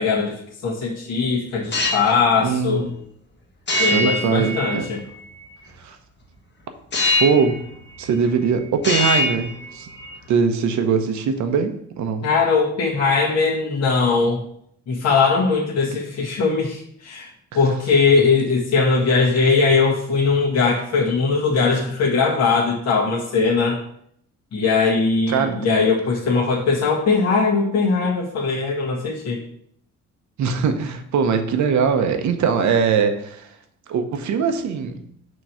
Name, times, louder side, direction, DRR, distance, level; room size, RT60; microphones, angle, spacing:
voice 1, 0.0-2.9 3.8-5.0 12.2-14.4 14.9-17.3 17.5-23.8 24.5-29.4, left 4 dB, 60° left, -6 dB, 1.7 m, -20 dB
sound 1, 1.6-2.2 3.7-5.1 6.9-7.6 7.9-8.5 8.8-10.1, left 2 dB, 35° left, 1.3 m, -23 dB
voice 2, 2.4-2.9 3.8-4.8 5.8-6.0 7.2-7.7 8.0-9.9 10.3-12.3 25.3-25.7 30.4-33.5 33.9-35.0, right 6 dB, 70° right, 7 dB, 0.9 m, -21 dB
6.3 x 3.0 x 5.6 m, 0.68 s
cardioid pair, 90°, 30 cm